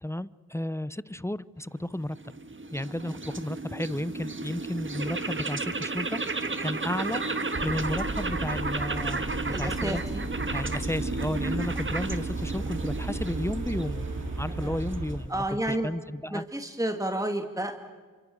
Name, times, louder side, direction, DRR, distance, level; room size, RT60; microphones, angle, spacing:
voice 1, 0.0-2.3 2.7-7.2 7.6-10.0 10.5-14.1 14.4-15.3 15.7-16.4, left 1 dB, 10° left, 17 dB, 0.8 m, -33 dB
sound 1, 1.9-15.4, right 3 dB, 35° right, 1.8 m, -33 dB
sound 2, 7.5-15.3, right 2 dB, 60° right, 5.5 m, -35 dB
voice 2, 9.5-10.2 11.5-11.6 14.5-14.8 15.3-15.9 16.3-17.7, right 1 dB, 10° right, 5 dB, 2.5 m, -31 dB
29.5 x 26.0 x 6.4 m, 1.5 s
cardioid pair, 45°, 34 cm